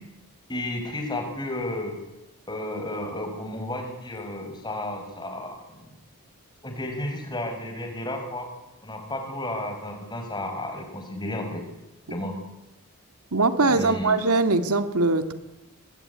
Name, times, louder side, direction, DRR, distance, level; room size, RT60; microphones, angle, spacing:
voice 1, 0.5-1.9 2.5-6.0 6.6-8.5 8.8-11.6 12.1-12.4 13.6-14.2, left 1 dB, 20° left, 4 dB, 5.7 m, -32 dB
voice 2, 13.3-15.3, right 3 dB, 85° right, 9 dB, 2.1 m, -21 dB
24.0 x 20.0 x 9.9 m, 0.94 s
head